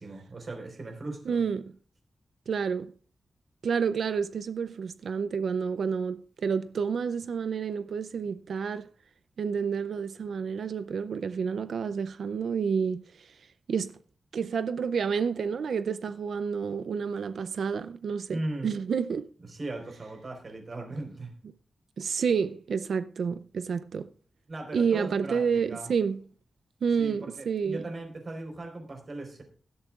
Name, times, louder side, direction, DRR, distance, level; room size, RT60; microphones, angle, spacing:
voice 1, 0.0-1.4 18.3-18.7 19.4-21.3 24.5-25.9 27.0-29.4, right 2 dB, 45° right, 4.3 m, -38 dB
voice 2, 1.3-1.7 2.5-2.9 3.6-8.9 9.4-13.4 13.7-14.0 14.3-19.3 22.0-24.1 24.7-26.2 26.8-27.9, right 6 dB, 85° right, 0.5 m, -29 dB
17.0 x 12.5 x 2.4 m
wide cardioid pair, 145°, 0 cm